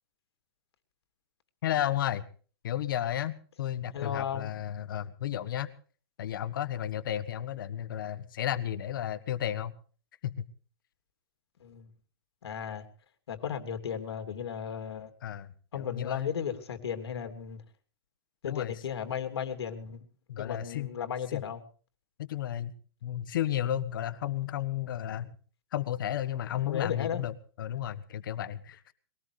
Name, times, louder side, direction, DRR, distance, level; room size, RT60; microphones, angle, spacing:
voice 1, 1.6-2.2 2.6-5.7 6.2-9.7 10.2-10.5 15.2-16.3 18.4-18.7 20.3-20.9 21.3-21.4 22.2-22.7 23.0-25.4 25.7-28.9, left 11 dB, 55° left, 13 dB, 1.5 m, -33 dB
voice 2, 3.9-4.5 11.6-11.9 12.4-12.9 13.3-15.1 15.7-17.6 18.4-20.0 20.4-21.6 26.6-27.2, left 8 dB, 90° left, 6 dB, 3.1 m, -35 dB
22.5 x 18.0 x 3.4 m, 0.40 s
hypercardioid pair, 170°, 13 cm